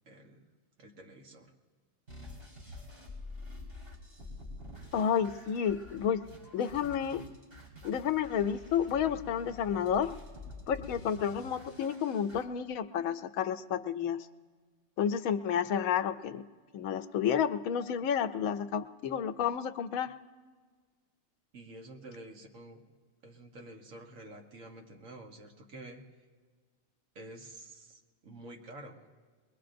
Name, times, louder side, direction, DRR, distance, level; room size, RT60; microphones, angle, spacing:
voice 1, 0.1-0.4 0.8-1.5 21.5-22.8 23.2-26.0 27.1-29.1, right 1 dB, 70° right, 2 dB, 1.7 m, -49 dB
sound 1, 2.1-12.4, left 2 dB, 45° right, 3.1 m, -48 dB
voice 2, 4.9-6.2 6.5-7.2 7.8-10.1 10.7-14.3 15.0-16.4 16.7-20.1, left 8 dB, 90° left, 10 dB, 1.1 m, -31 dB
22.0 x 21.5 x 2.6 m, 1.5 s
omnidirectional pair, 1.4 m